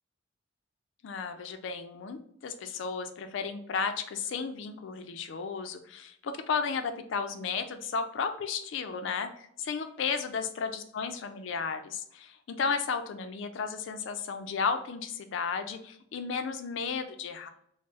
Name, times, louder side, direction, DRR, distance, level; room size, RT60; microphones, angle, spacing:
voice 1, 1.0-17.5, left 5 dB, 65° left, 8 dB, 0.3 m, -34 dB
2.4 x 2.0 x 3.8 m, 0.70 s
head